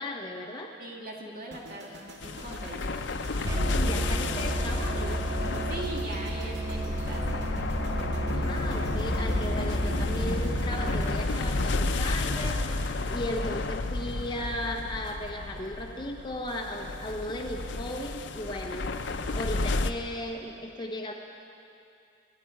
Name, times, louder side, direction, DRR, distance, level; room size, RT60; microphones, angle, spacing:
voice 1, 0.0-0.7 3.7-5.2 8.3-19.0 19.3-21.1, left 1 dB, 25° left, 1 dB, 1.0 m, -36 dB
voice 2, 0.8-3.0 5.7-7.4, right 1 dB, 45° right, -2 dB, 2.3 m, -40 dB
sound 1, 1.5-13.7 14.0-14.3, right 1 dB, 65° right, 1.9 m, -47 dB
sound 2, 2.2-19.9, left 2 dB, 65° left, 0.7 m, -31 dB
Musical instrument, 3.4-11.2, right 2 dB, 15° right, 0.4 m, -33 dB
27.0 x 10.5 x 4.8 m, 2.7 s
head